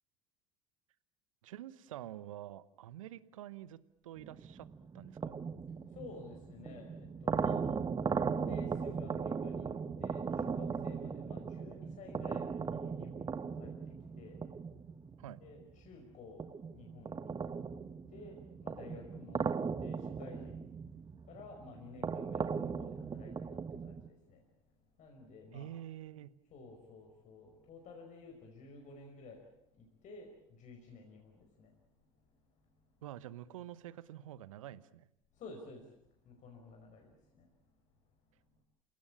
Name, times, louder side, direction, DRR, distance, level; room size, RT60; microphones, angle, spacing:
voice 1, 1.4-4.7 4.9-5.4 15.2-15.4 25.5-26.4 33.0-35.1, right 12 dB, 75° right, 18 dB, 1.0 m, -47 dB
sound 1, 4.2-15.9 16.4-24.1, right 5 dB, 25° right, 1.2 m, -38 dB
voice 2, 6.0-7.6 8.0-9.7 10.0-13.7 14.2-14.4 15.4-16.4 16.7-17.4 18.1-19.5 19.8-20.6 21.3-23.6 23.9-24.4 25.0-25.7 26.5-29.4 30.0-30.3 30.6-31.7 35.4-35.8 36.3-37.1, left 3 dB, 45° left, 1 dB, 5.3 m, -52 dB
28.5 x 17.0 x 8.6 m, 0.76 s
figure-of-eight pair, 70°, 17 cm